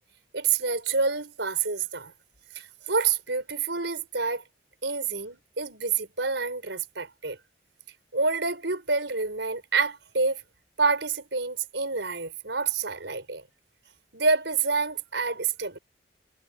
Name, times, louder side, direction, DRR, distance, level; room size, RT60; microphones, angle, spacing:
voice 1, 0.3-2.1 2.8-4.4 4.8-7.4 8.1-10.4 10.8-13.4 14.1-15.8, right 4 dB, 85° right, 4.9 m, -27 dB
head